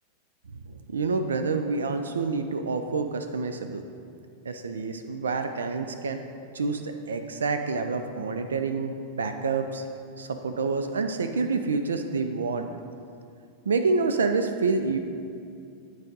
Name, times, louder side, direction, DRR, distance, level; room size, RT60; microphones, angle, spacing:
voice 1, 0.7-3.8 4.5-6.2 6.5-9.8 10.2-12.7 13.7-15.0, right 4 dB, 70° right, 7 dB, 0.3 m, -28 dB
9.6 x 4.7 x 3.9 m, 2.5 s
figure-of-eight pair, 90°, 0 cm